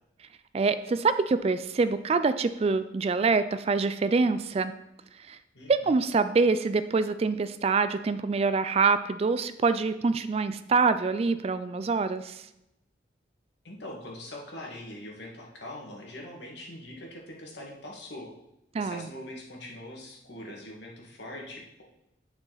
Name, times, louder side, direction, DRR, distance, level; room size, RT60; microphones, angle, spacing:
voice 1, 0.5-4.7 5.3-5.4 5.7-12.4 18.7-19.1, right 4 dB, 35° right, 12 dB, 0.3 m, -25 dB
voice 2, 5.5-6.0 13.6-18.3 18.8-21.8, left 1 dB, 65° left, -1 dB, 1.9 m, -42 dB
9.1 x 5.7 x 4.1 m, 0.86 s
head